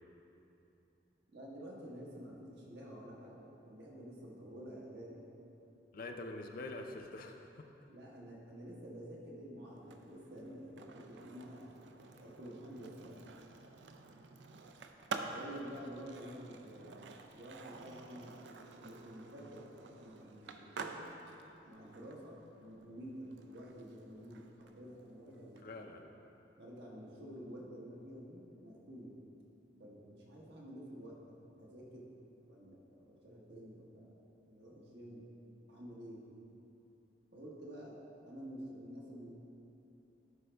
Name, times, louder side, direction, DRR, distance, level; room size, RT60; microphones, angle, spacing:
voice 1, 1.3-5.3 7.9-11.8 12.2-13.3 15.2-17.0 17.3-18.4 18.7-19.7 20.0-21.1 21.6-25.7 26.6-29.1 29.8-32.1 32.5-35.2 35.7-36.3 37.3-39.4, equal, 70° right, -3 dB, 1.4 m, -50 dB
voice 2, 5.9-7.7 25.6-26.1, left 2 dB, 55° left, 4 dB, 0.5 m, -45 dB
Skateboard, 9.8-25.6, right 4 dB, 85° right, 0.5 m, -50 dB
11.5 x 5.2 x 3.4 m, 2.9 s
head